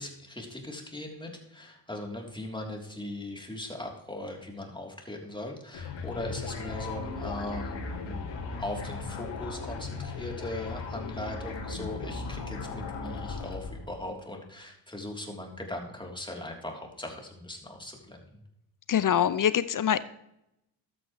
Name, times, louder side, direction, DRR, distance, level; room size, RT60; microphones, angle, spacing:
voice 1, 0.0-7.7 8.1-8.2 8.6-18.4, left 1 dB, 10° left, 1 dB, 3.3 m, -39 dB
sound 1, 5.7-14.0, left 4 dB, 60° left, 2.8 m, -37 dB
voice 2, 18.9-20.0, left 9 dB, 40° left, 16 dB, 0.7 m, -24 dB
12.5 x 9.2 x 3.2 m, 0.82 s
hypercardioid pair, 50°, 50 cm